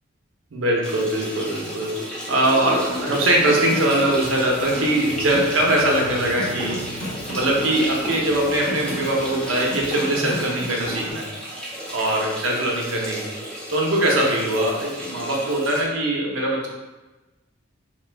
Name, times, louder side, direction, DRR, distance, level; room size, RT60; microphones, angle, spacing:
voice 1, 0.5-6.9 7.3-11.3 11.9-13.3 13.7-16.7, right 1 dB, 85° right, -1 dB, 0.7 m, -22 dB
sound 1, 0.8-15.8, right 1 dB, 5° left, 0.5 m, -34 dB
sound 2, 2.6-11.1, left 1 dB, 30° left, 1.0 m, -33 dB
2.9 x 2.2 x 3.3 m, 1.2 s
head